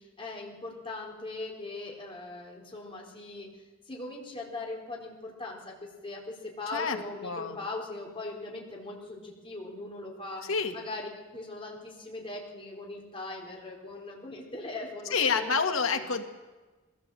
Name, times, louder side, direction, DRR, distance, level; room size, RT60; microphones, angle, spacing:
voice 1, 0.0-3.5 3.9-15.5 15.9-16.0, left 2 dB, 25° left, -2 dB, 4.2 m, -40 dB
voice 2, 6.7-7.6 10.5-10.8 15.1-16.2, left 5 dB, 70° left, 5 dB, 1.9 m, -28 dB
21.5 x 17.0 x 7.7 m, 1.2 s
head